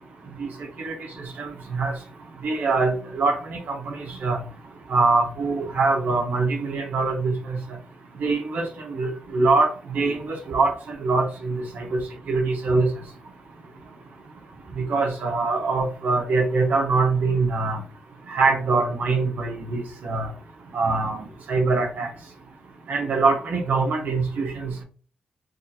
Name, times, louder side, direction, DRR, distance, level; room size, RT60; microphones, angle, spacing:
voice 1, 1.4-1.9 2.4-4.4 4.9-7.6 8.2-12.0 12.3-12.9 14.9-17.8 18.3-20.3 20.7-22.1 22.9-24.8, right 3 dB, 85° right, 2 dB, 0.9 m, -23 dB
6.3 x 2.5 x 2.7 m, 0.38 s
cardioid pair, 70°, 3 cm